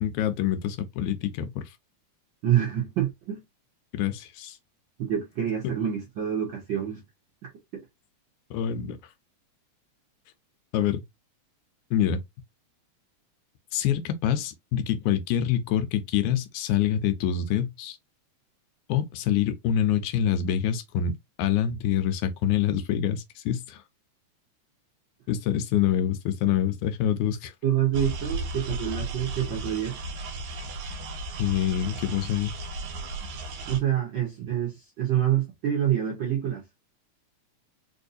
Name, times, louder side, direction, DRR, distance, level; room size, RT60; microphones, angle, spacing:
voice 1, 0.0-1.7 3.9-4.6 8.5-9.0 10.7-11.0 11.9-12.2 13.7-18.0 18.9-21.1 21.4-23.8 25.3-27.5 31.4-32.6, left 10 dB, 85° left, 2.1 m, -26 dB
voice 2, 2.4-3.4 5.0-7.0 7.7-7.8 27.6-30.0 33.7-36.6, right 10 dB, 65° right, 1.2 m, -27 dB
sound 1, 27.9-33.8, right 2 dB, 90° right, 1.1 m, -35 dB
4.6 x 2.6 x 2.5 m
omnidirectional pair, 3.4 m